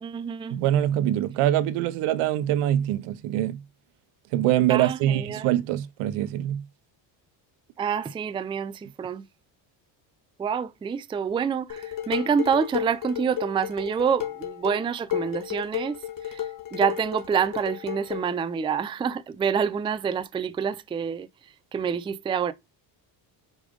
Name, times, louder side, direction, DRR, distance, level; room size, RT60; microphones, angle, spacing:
voice 1, 0.0-0.6 4.7-5.5 7.8-9.2 10.4-21.3 21.7-22.5, right 7 dB, 10° right, 0.3 m, -27 dB
voice 2, 0.5-3.6 4.3-6.7, right 12 dB, 85° right, 0.8 m, -24 dB
Dishes pots and pans, 11.7-18.3, left 11 dB, 40° left, 1.8 m, -33 dB
5.1 x 4.9 x 5.2 m
cardioid pair, 125°, 49 cm